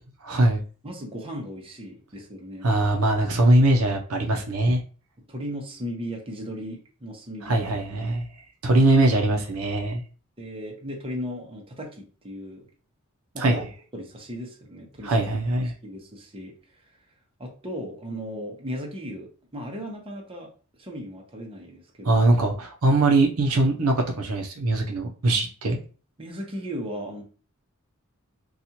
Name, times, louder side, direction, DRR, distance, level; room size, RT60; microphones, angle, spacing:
voice 1, 0.2-0.6 2.6-4.8 7.4-8.2 8.6-10.0 13.4-13.6 15.0-15.7 22.0-25.8, right 2 dB, 75° right, 2 dB, 0.6 m, -21 dB
voice 2, 0.8-2.7 5.3-7.7 8.0-8.1 8.6-8.9 10.4-12.7 13.3-13.6 13.9-15.2 15.6-16.5 17.4-20.5 20.8-22.2 26.2-27.2, equal, 25° right, 0 dB, 0.8 m, -36 dB
4.1 x 2.4 x 2.8 m, 0.38 s
head